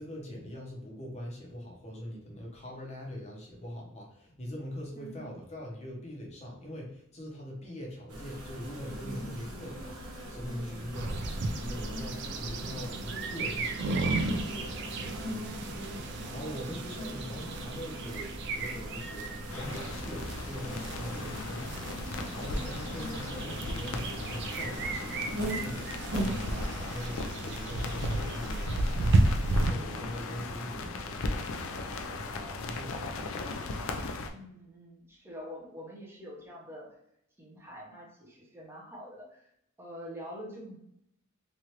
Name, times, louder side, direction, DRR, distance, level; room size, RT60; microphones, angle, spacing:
voice 1, 0.0-10.0 10.3-15.2 16.3-33.3, equal, 30° left, -1 dB, 0.8 m, -42 dB
voice 2, 4.9-5.3 16.2-16.7 17.0-17.1 34.3-37.0 37.4-39.4 39.8-40.8, equal, 10° right, -4 dB, 0.6 m, -46 dB
sound 1, 8.1-26.7, equal, 80° right, 1.0 m, -40 dB
sound 2, 10.9-29.7, right 2 dB, 50° right, 0.3 m, -33 dB
sound 3, 19.5-34.3, left 3 dB, 60° left, 0.4 m, -38 dB
3.1 x 2.4 x 2.8 m, 0.77 s
head